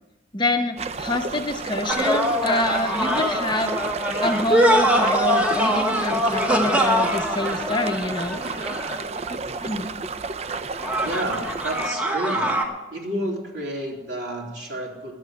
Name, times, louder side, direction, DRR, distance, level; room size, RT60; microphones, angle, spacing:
voice 1, 0.3-3.8 4.2-8.4 9.3-9.9, left 2 dB, 25° left, 5 dB, 0.8 m, -26 dB
sound 1, 0.8-11.9, right 4 dB, 35° right, 0.4 m, -32 dB
sound 2, 1.9-9.2 10.8-12.6, equal, 5° right, 1.2 m, -23 dB
voice 2, 10.9-12.6 12.9-15.1, right 1 dB, 75° right, -3 dB, 3.6 m, -30 dB
11.0 x 8.1 x 9.0 m, 1.1 s
head